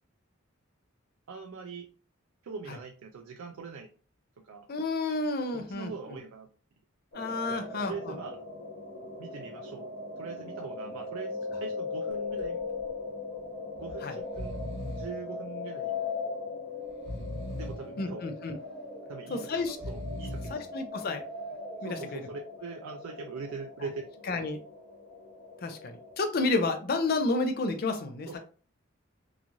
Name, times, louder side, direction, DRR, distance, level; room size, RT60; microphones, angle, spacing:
voice 1, 1.3-1.9 2.4-3.9 4.4-4.7 5.5-6.5 7.5-8.4 9.2-9.9 10.2-12.6 13.8-14.6 14.9-15.9 17.6-18.3 19.1-20.6 21.8-24.4 28.3-28.4, right 4 dB, 85° right, 4 dB, 0.4 m, -42 dB
voice 2, 4.7-5.9 7.1-8.1 14.0-14.1 18.0-18.6 19.3-19.8 20.5-21.2 21.8-22.2 24.3-24.6 25.6-28.3, left 3 dB, 45° left, 6 dB, 0.4 m, -30 dB
sound 1, 7.1-26.2, left 3 dB, 75° left, 1.2 m, -39 dB
Breathing, 12.1-12.5 12.8-12.9 13.7-13.9 14.2-15.2 15.8-16.4 16.9-17.9 18.5-19.1 19.7-20.7 21.2-21.9, left 1 dB, 30° right, 1.4 m, -40 dB
3.0 x 2.3 x 2.6 m, 0.39 s
head